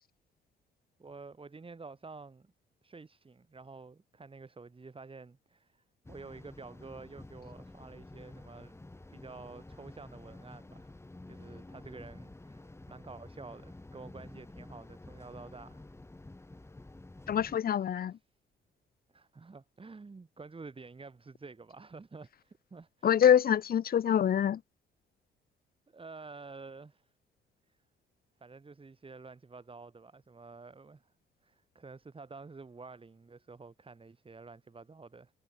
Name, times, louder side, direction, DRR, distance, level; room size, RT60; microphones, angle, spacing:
voice 1, 1.0-2.5 2.8-8.7 9.1-11.0 11.3-15.8 17.7-18.2 19.1-23.1 25.9-27.1 28.4-31.1 31.4-35.3, right 4 dB, 25° right, 5.7 m, -50 dB
sound 1, 6.0-17.6, left 2 dB, 15° left, 3.1 m, -50 dB
voice 2, 17.3-18.1 23.0-24.6, left 9 dB, 50° left, 0.7 m, -25 dB
cardioid pair, 90°, 20 cm